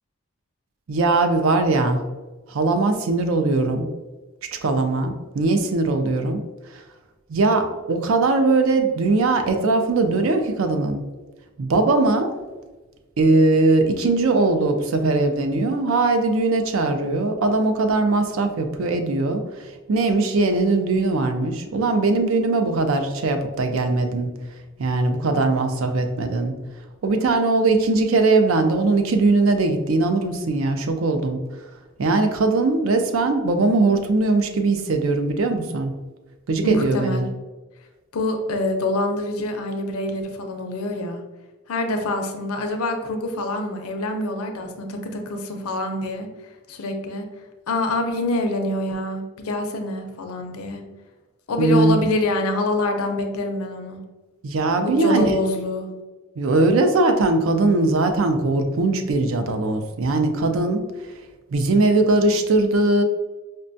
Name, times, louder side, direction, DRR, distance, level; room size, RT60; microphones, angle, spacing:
voice 1, 0.9-2.0 2.5-3.9 4.6-6.4 7.3-11.0 11.6-12.3 13.2-24.3 24.8-26.5 27.0-31.4 32.0-35.9 36.5-37.2 51.6-52.0 54.4-55.2 56.4-60.8 61.5-63.0, right 3 dB, 65° right, 7 dB, 0.4 m, -20 dB
voice 2, 36.6-37.3 38.1-41.2 41.7-46.3 46.7-47.3 47.7-50.8 51.5-54.0 54.8-55.9, left 1 dB, 85° left, 5 dB, 0.5 m, -25 dB
5.1 x 2.2 x 2.6 m, 1.2 s
head